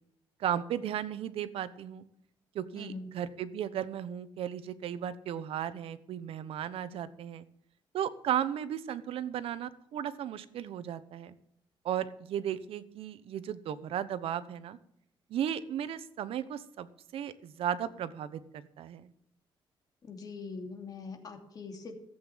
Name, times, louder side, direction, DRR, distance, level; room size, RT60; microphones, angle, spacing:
voice 1, 0.4-2.0 2.5-7.4 7.9-11.3 11.8-14.8 15.3-19.1, right 10 dB, 80° right, 13 dB, 1.0 m, -35 dB
voice 2, 2.8-3.1 20.1-22.0, left 4 dB, 40° left, 3 dB, 2.8 m, -42 dB
14.5 x 8.1 x 7.3 m, 0.73 s
cardioid pair, 125°, 10 cm